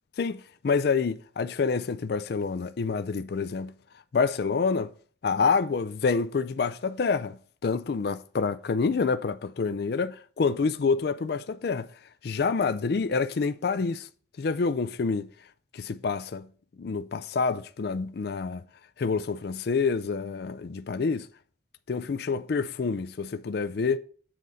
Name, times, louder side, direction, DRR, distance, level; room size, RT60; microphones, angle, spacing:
voice 1, 0.2-3.7 4.1-4.9 5.2-7.4 7.6-11.9 12.2-14.1 14.4-15.3 15.7-16.5 16.8-18.6 19.0-21.3 21.9-24.0, left 5 dB, 55° left, 0.4 m, -27 dB
7.5 x 4.0 x 6.2 m
head